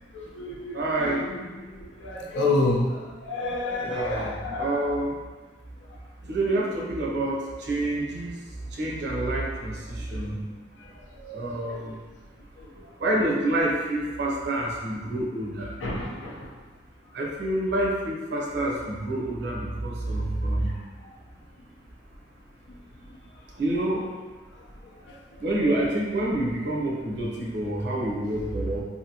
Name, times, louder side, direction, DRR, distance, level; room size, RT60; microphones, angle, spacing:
voice 1, 0.1-4.9 10.3-10.4 11.2-11.4 11.7-11.8 15.8-16.5, left 2 dB, 75° left, -2 dB, 0.6 m, -29 dB
voice 2, 0.7-1.2 3.8-4.3 4.6-5.1 6.3-7.4 7.7-8.3 8.8-9.7 10.1-10.4 11.3-12.0 13.0-15.7 17.1-20.7 23.6-24.1 25.4-28.8, right 1 dB, 60° right, -2 dB, 0.6 m, -27 dB
2.8 x 2.6 x 2.7 m, 1.3 s
head